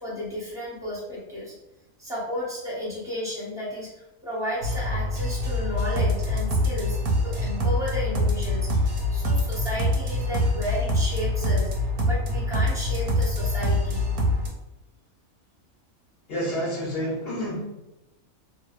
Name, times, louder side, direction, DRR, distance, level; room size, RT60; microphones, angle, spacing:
voice 1, 0.0-1.5 2.0-7.0 7.2-14.0, equal, 5° right, -7 dB, 0.3 m, -33 dB
sound 1, 4.6-14.5, left 1 dB, 85° right, 1.1 m, -25 dB
voice 2, 16.3-17.6, equal, 55° left, -4 dB, 0.7 m, -29 dB
2.6 x 2.1 x 2.3 m, 0.98 s
omnidirectional pair, 1.5 m